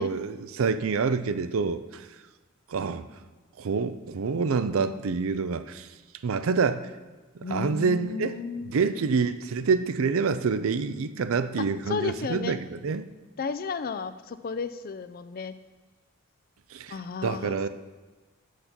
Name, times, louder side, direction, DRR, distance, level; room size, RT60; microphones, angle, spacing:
voice 1, 0.0-2.0 2.7-3.1 3.6-5.9 6.2-6.9 7.5-8.3 8.6-12.6 12.8-13.0 16.7-16.9 17.2-17.7, right 5 dB, 70° right, 12 dB, 0.4 m, -27 dB
voice 2, 7.4-8.7 11.6-12.6 13.4-15.5 16.9-17.7, left 5 dB, 45° left, 12 dB, 0.4 m, -33 dB
6.8 x 6.5 x 5.8 m, 1.3 s
head